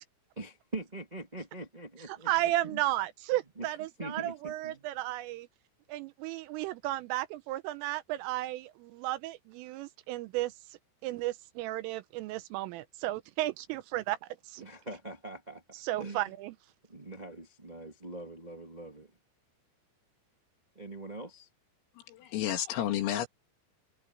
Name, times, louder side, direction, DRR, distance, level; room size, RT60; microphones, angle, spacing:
voice 1, 0.3-2.8 3.5-3.7 4.0-4.8 14.6-16.3 16.9-19.1 20.7-21.5, right 2 dB, 25° right, 0.9 m, -43 dB
voice 2, 2.1-5.5 5.9-10.5 11.0-14.7 15.7-16.5, right 16 dB, 85° right, 3.2 m, -34 dB
voice 3, 22.1-23.3, left 11 dB, 80° left, 4.9 m, -31 dB
omnidirectional pair, 6.0 m